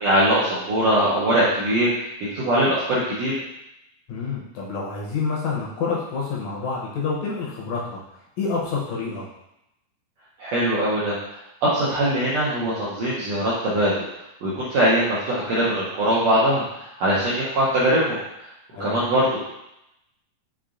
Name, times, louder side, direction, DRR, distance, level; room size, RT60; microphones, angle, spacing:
voice 1, 0.0-1.9 2.3-3.3 10.4-11.2 11.6-14.0 14.4-18.2 18.8-19.5, right 1 dB, 75° right, -8 dB, 1.6 m, -21 dB
voice 2, 4.1-8.0 8.4-9.3 18.7-19.0, left 4 dB, 75° left, -4 dB, 1.8 m, -28 dB
5.8 x 3.5 x 2.5 m, 0.85 s
omnidirectional pair, 4.1 m